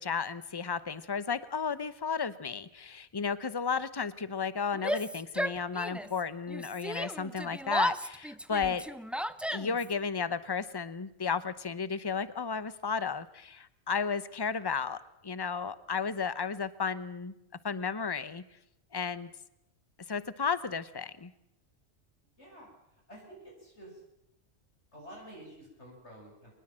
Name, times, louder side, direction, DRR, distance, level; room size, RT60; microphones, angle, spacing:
voice 1, 0.0-8.9 9.5-17.3 17.6-18.5 18.9-19.3 20.1-21.3, left 5 dB, 20° left, 15 dB, 0.9 m, -33 dB
Yell, 4.7-6.2 6.5-9.9, equal, ahead, 0.6 m, -34 dB
voice 2, 22.4-22.7 23.1-24.0 24.9-26.5, right 1 dB, 75° left, -1 dB, 8.3 m, -50 dB
24.5 x 20.5 x 7.6 m, 0.82 s
omnidirectional pair, 1.2 m